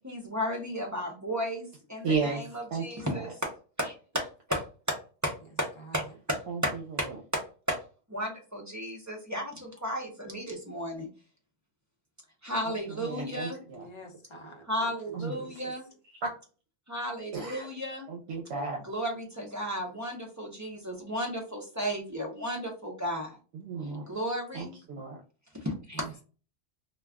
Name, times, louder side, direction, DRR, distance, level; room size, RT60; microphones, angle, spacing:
voice 1, 0.0-3.5 3.8-6.7 7.0-7.1 7.3-7.4 7.7-7.8 8.1-11.1 12.4-13.6 14.7-15.9 16.9-18.1 18.8-23.4 24.1-24.7 25.5-26.1, equal, 20° right, 0.5 m, -34 dB
voice 2, 2.0-2.4 2.7-2.8 6.5-6.6 13.0-13.9 15.1-15.3 17.3-17.7 18.1-18.8 23.5-24.0 24.5-25.2, right 5 dB, 75° right, 0.9 m, -33 dB
voice 3, 13.7-14.9 15.2-15.7 25.9-26.2, right 3 dB, 35° left, 0.6 m, -47 dB
2.3 x 2.2 x 3.4 m
omnidirectional pair, 1.1 m